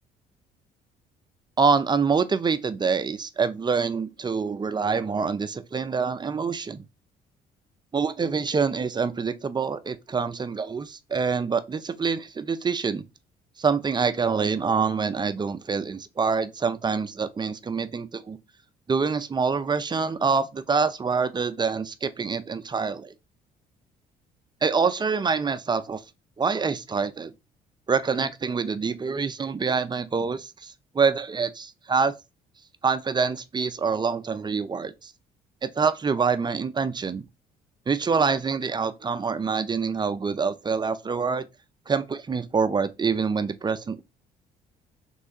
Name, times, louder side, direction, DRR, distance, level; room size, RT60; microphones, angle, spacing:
voice 1, 1.6-6.8 7.9-13.0 13.6-18.4 18.9-23.1 24.6-26.0 26.4-27.3 27.9-32.1 32.8-35.1 35.6-37.3 37.9-41.4 41.9-44.0, right 5 dB, 25° right, 0.4 m, -26 dB
3.2 x 3.0 x 2.8 m
hypercardioid pair, 55°, 19 cm